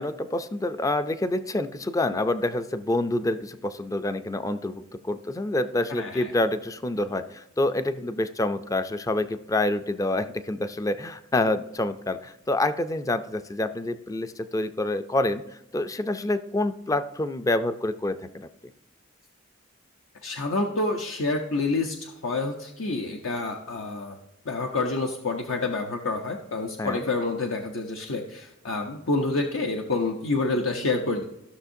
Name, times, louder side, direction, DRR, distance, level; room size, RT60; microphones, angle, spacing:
voice 1, 0.0-15.4 15.7-18.5 26.8-27.0, left 2 dB, 15° left, 11 dB, 0.4 m, -27 dB
voice 2, 6.0-6.3 20.2-24.2 24.5-31.2, left 3 dB, 75° left, 2 dB, 0.8 m, -28 dB
14.0 x 6.3 x 2.6 m, 0.87 s
head